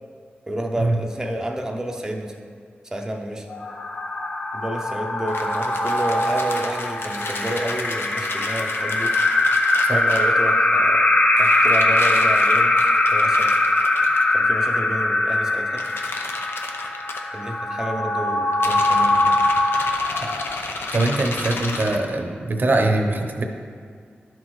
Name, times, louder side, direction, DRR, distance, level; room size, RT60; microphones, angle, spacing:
voice 1, 0.5-2.3 2.8-3.5 4.5-9.2 9.9-11.1 11.4-13.5 14.3-15.8 17.3-19.4, right 1 dB, 15° right, 1 dB, 0.6 m, -30 dB
sound 1, 3.5-20.9, left 2 dB, 30° left, 0.6 m, -21 dB
sound 2, 5.3-10.4 11.4-14.2 15.8-17.2 18.5-22.0, left 3 dB, 80° left, 0.7 m, -32 dB
voice 2, 20.9-23.4, right 2 dB, 55° right, 3 dB, 0.8 m, -22 dB
11.0 x 6.1 x 3.2 m, 2.1 s
wide cardioid pair, 95°, 4 cm